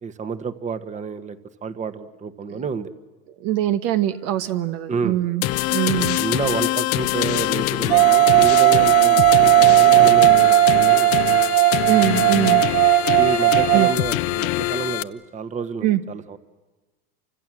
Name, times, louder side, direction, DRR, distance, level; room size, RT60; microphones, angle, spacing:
voice 1, 0.0-2.9 4.4-4.5 4.9-5.2 6.1-11.7 13.2-16.4, right 5 dB, 25° right, 11 dB, 1.5 m, -29 dB
voice 2, 3.4-6.2 11.9-12.6 13.7-13.9 15.8-16.0, right 13 dB, 55° right, 9 dB, 1.3 m, -23 dB
sound 1, 5.4-15.0, left 17 dB, 50° left, 0.9 m, -24 dB
sound 2, 7.9-14.0, right 18 dB, 75° right, 0.9 m, -16 dB
28.5 x 25.5 x 7.7 m, 1.3 s
supercardioid pair, 125°, 30 cm